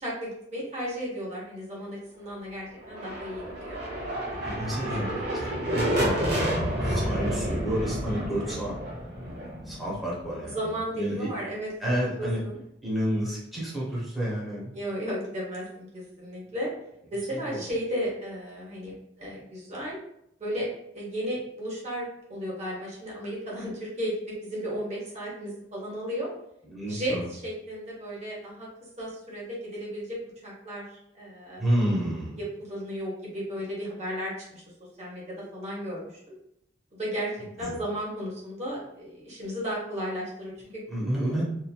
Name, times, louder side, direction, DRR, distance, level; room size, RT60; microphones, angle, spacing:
voice 1, 0.0-3.8 10.5-11.7 11.9-12.6 14.7-16.7 17.1-20.0 20.4-20.7 20.9-26.3 26.9-28.7 29.0-30.8 31.1-31.6 32.4-34.6 35.0-36.1 37.0-37.3 37.6-40.5, equal, 40° right, -5 dB, 0.9 m, -34 dB
sound 1, 2.8-10.6, equal, 65° right, 0.9 m, -30 dB
voice 2, 4.3-8.8 9.7-11.3 11.8-12.4 12.8-14.7 17.5-17.7 26.6-27.2 31.6-32.4 37.6-37.8 40.9-41.4, equal, ahead, -7 dB, 0.9 m, -30 dB
2.9 x 2.5 x 2.3 m, 0.78 s
head